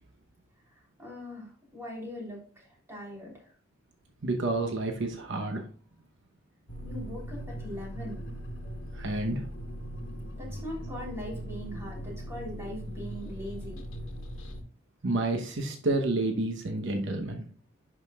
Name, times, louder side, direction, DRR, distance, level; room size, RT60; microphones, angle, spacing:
voice 1, 1.0-3.3 6.8-8.3 10.4-13.8, left 1 dB, 15° right, -4 dB, 3.4 m, -41 dB
voice 2, 4.2-5.6 9.0-9.4 15.0-17.4, right 2 dB, 65° right, 4 dB, 0.9 m, -29 dB
sound 1, 6.7-14.6, equal, 75° left, 1.4 m, -39 dB
11.0 x 5.1 x 2.4 m, 0.40 s
head